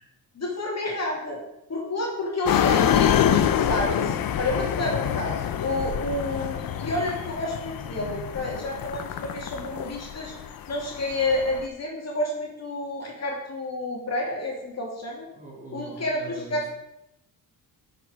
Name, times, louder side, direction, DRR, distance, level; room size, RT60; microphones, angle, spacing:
voice 1, 0.3-1.4 1.7-10.3 10.7-15.2 15.7-16.6, left 2 dB, 45° left, -2 dB, 2.7 m, -30 dB
sound 1, 2.5-11.7, left 9 dB, 65° left, 0.7 m, -26 dB
voice 2, 15.3-16.7, right 3 dB, 20° right, -3 dB, 3.1 m, -42 dB
9.8 x 6.0 x 5.0 m, 0.85 s
cardioid pair, 105°, 37 cm